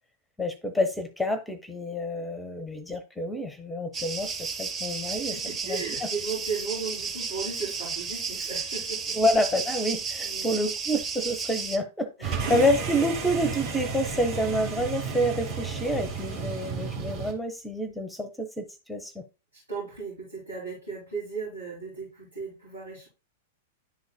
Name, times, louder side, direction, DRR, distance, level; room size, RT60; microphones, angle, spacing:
voice 1, 0.4-5.4 5.6-5.8 9.1-19.2, equal, 5° left, 11 dB, 0.8 m, -28 dB
sound 1, 3.9-11.8, right 5 dB, 20° right, 1.1 m, -33 dB
voice 2, 5.1-9.2 10.2-10.5 12.2-12.5 19.5-23.1, right 5 dB, 85° right, -8 dB, 3.4 m, -36 dB
sound 2, 12.2-17.3, right 5 dB, 45° right, 1.8 m, -32 dB
10.5 x 4.0 x 2.3 m, 0.30 s
figure-of-eight pair, 95°, 0 cm